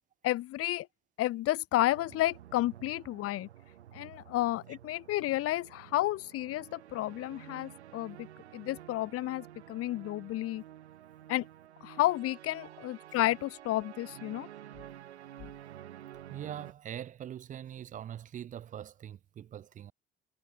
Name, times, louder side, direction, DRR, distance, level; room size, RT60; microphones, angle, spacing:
voice 1, 0.2-0.9 1.2-3.5 3.9-8.3 8.5-10.6 11.3-11.4 11.8-14.5, left 15 dB, 45° left, 0.6 m, -31 dB
sound 1, 1.9-16.7, right 12 dB, 85° right, 1.1 m, -51 dB
voice 2, 16.3-19.9, right 10 dB, 25° right, 0.3 m, -43 dB
figure-of-eight pair, 50°, 33 cm